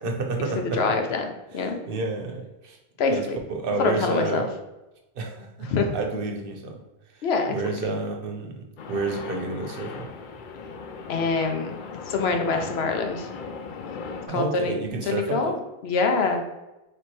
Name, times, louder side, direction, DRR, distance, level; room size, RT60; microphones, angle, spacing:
voice 1, 0.0-1.0 1.5-2.8 3.1-4.5 5.2-6.8 7.1-10.1 14.3-15.6, right 3 dB, 65° right, 3 dB, 0.8 m, -30 dB
voice 2, 0.6-1.2 1.5-1.8 3.0-3.4 3.8-4.5 5.6-5.9 7.2-7.5 7.8-7.9 11.1-11.7 12.1-13.3 14.3-14.7 15.1-15.5 15.8-16.4, left 4 dB, 75° left, 4 dB, 0.9 m, -25 dB
sound 1, 8.8-14.3, left 5 dB, 60° left, 0.6 m, -38 dB
3.4 x 3.1 x 4.1 m, 1.0 s
omnidirectional pair, 1.1 m